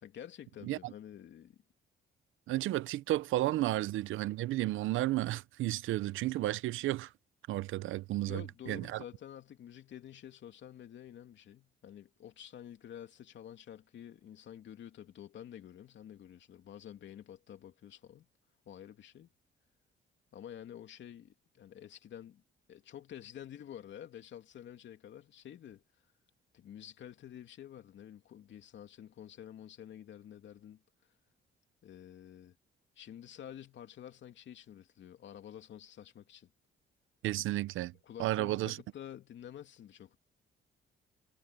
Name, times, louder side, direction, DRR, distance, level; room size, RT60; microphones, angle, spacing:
voice 1, 0.0-1.6 3.6-3.7 8.2-18.3 18.7-19.3 20.3-22.4 22.7-25.8 26.5-30.8 31.8-32.5 33.0-36.5 38.0-40.2, left 10 dB, 65° left, 2.9 m, -49 dB
voice 2, 2.5-7.1 7.5-9.0 37.2-37.9 38.2-38.8, right 16 dB, 85° right, 0.7 m, -33 dB
cardioid pair, 90°, 20 cm